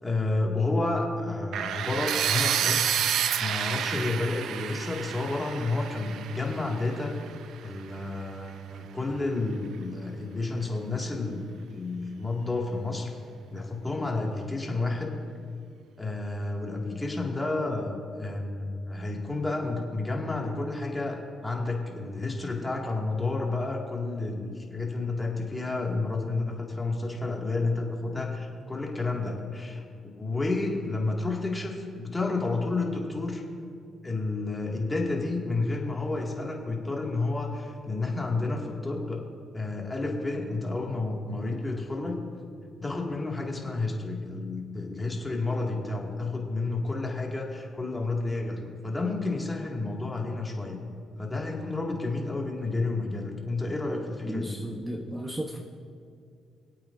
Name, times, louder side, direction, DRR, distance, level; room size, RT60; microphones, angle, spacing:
voice 1, 0.0-2.9 3.4-7.2 7.6-11.4 11.7-13.1 13.5-15.2 16.0-33.4 34.0-39.2 39.5-42.2 42.8-50.8 51.2-54.5, left 3 dB, 15° left, -1 dB, 2.2 m, -30 dB
sound 1, 1.5-7.4, right 9 dB, 75° right, 0.5 m, -29 dB
voice 2, 54.2-55.6, equal, 15° right, 1 dB, 1.0 m, -34 dB
25.5 x 8.5 x 2.7 m, 2.3 s
cardioid pair, 90°, 0 cm